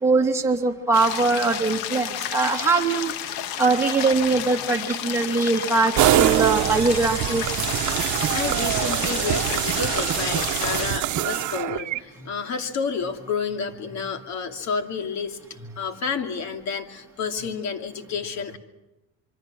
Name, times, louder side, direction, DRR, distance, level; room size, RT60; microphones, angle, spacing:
voice 1, 0.0-3.1 3.6-7.4, right 3 dB, 10° right, -1 dB, 2.6 m, -22 dB
sound 1, 0.9-10.9, left 10 dB, 75° left, 1.5 m, -31 dB
sound 2, 6.0-12.0, right 13 dB, 55° right, 1.1 m, -24 dB
voice 2, 8.3-18.6, left 5 dB, 50° left, 6 dB, 2.6 m, -30 dB
26.5 x 24.0 x 6.3 m, 0.98 s
cardioid pair, 115°, 36 cm